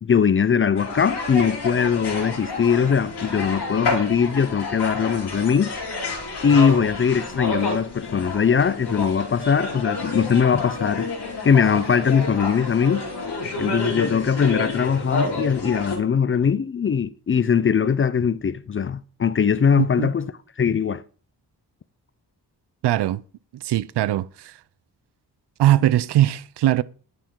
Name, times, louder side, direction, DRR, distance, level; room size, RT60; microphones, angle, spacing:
voice 1, 0.0-5.7 6.4-11.1 11.4-13.1 13.6-20.3 20.6-21.0, left 7 dB, 30° left, 0.4 m, -21 dB
sound 1, 0.8-16.0, left 3 dB, 75° left, 2.5 m, -29 dB
voice 2, 19.8-20.1 22.8-23.2 23.6-24.5 25.6-26.8, right 13 dB, 75° right, 0.5 m, -20 dB
10.0 x 3.7 x 4.4 m
cardioid pair, 65°, 41 cm